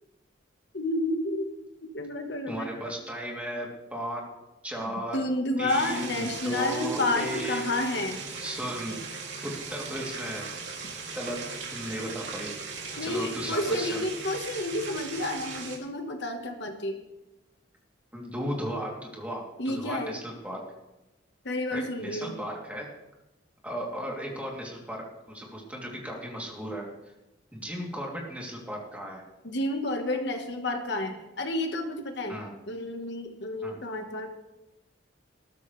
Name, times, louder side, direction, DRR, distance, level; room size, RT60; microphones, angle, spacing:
voice 1, 0.7-1.5 1.9-2.7 5.1-8.2 13.0-17.0 19.6-20.1 21.4-22.3 29.4-32.3 32.7-34.3, left 1 dB, 60° left, 4 dB, 1.5 m, -30 dB
voice 2, 2.5-4.3 4.6-5.2 5.6-7.6 8.4-9.0 9.4-10.5 11.1-11.4 11.7-12.5 13.0-14.0 18.1-20.6 21.7-22.9 23.6-26.9 27.5-29.2 32.3-32.5 33.6-33.8, equal, 5° right, -3 dB, 3.1 m, -35 dB
sound 1, 5.7-15.8, right 4 dB, 65° right, 2.9 m, -38 dB
20.0 x 13.5 x 3.4 m, 1.0 s
head